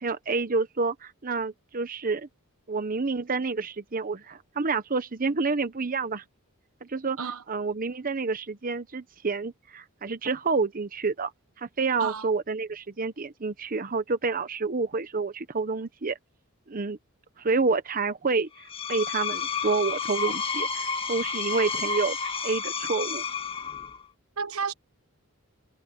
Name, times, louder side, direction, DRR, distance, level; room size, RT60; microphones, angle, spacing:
voice 1, 0.0-2.3 2.7-6.2 6.8-7.2 7.5-11.3 11.6-16.2 16.7-17.0 17.4-22.2 22.4-23.2, right 4 dB, 40° right, 0.9 m, -28 dB
Screech, 18.6-24.1, left 5 dB, 25° left, 2.0 m, -31 dB
voice 2, 24.4-24.7, right 5 dB, 75° right, 1.2 m, -31 dB
head